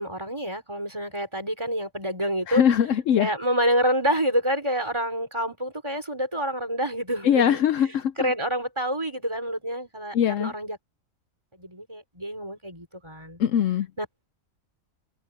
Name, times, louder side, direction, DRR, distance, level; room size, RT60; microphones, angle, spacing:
voice 1, 0.0-2.6 3.2-7.9 8.2-10.8 11.5-13.4 14.0-14.1, equal, 20° right, 4.6 m, -28 dB
voice 2, 2.5-3.3 7.2-8.1 10.1-10.5 13.4-13.9, left 9 dB, 70° left, 0.9 m, -21 dB
omnidirectional pair, 1.5 m